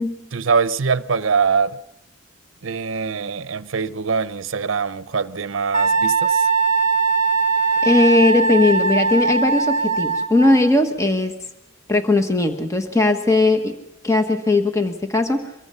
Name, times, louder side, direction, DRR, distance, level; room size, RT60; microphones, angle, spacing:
voice 1, 0.3-1.8 2.6-6.5, right 5 dB, 70° right, 0.7 m, -23 dB
Wind instrument woodwind instrument, 5.7-10.7, right 4 dB, 35° right, 1.0 m, -20 dB
voice 2, 7.8-11.3 11.9-13.7 14.0-15.5, left 2 dB, 15° left, 1.3 m, -18 dB
24.0 x 22.5 x 5.6 m
head